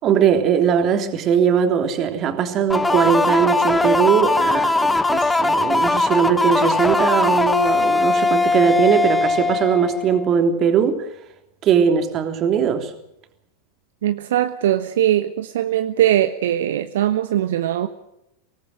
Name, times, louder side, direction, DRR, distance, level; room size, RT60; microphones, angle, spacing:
voice 1, 0.0-11.1 11.6-12.9, right 7 dB, 30° right, 6 dB, 3.4 m, -20 dB
sound 1, 2.7-10.3, left 3 dB, 5° left, 1.4 m, -19 dB
voice 2, 14.0-17.9, right 12 dB, 60° right, 9 dB, 1.2 m, -20 dB
25.5 x 19.0 x 6.5 m, 0.82 s
figure-of-eight pair, 90°, 0 cm